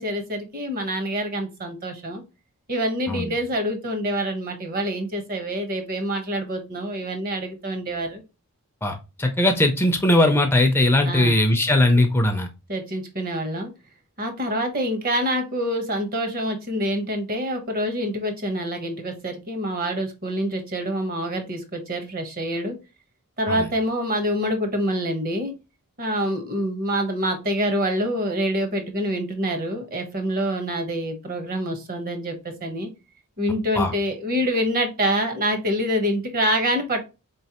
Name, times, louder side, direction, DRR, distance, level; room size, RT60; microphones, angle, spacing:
voice 1, 0.0-2.2 2.7-8.2 11.0-11.4 12.7-13.7 14.2-22.8 23.4-25.5 26.0-32.9 33.4-37.0, equal, 40° right, 6 dB, 1.0 m, -26 dB
voice 2, 8.8-12.5 23.5-23.7 33.8-33.9, left 1 dB, 10° left, 5 dB, 0.4 m, -19 dB
4.3 x 3.1 x 2.8 m, 0.27 s
head